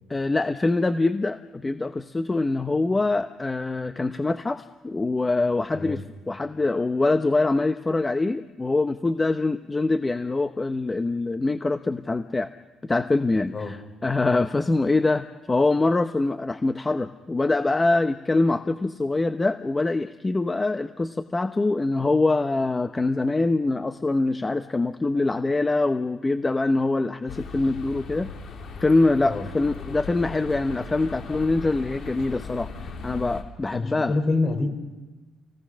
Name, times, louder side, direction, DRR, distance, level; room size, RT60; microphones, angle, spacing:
voice 1, 0.1-12.5 12.8-28.3 28.8-32.7 33.0-34.1, left 2 dB, 20° left, 9 dB, 0.8 m, -24 dB
sound 1, 27.3-33.4, left 5 dB, 65° left, 3.4 m, -38 dB
voice 2, 33.7-34.7, left 3 dB, 45° left, 6 dB, 4.6 m, -26 dB
27.5 x 18.5 x 6.3 m, 1.1 s
cardioid pair, 90°, 0 cm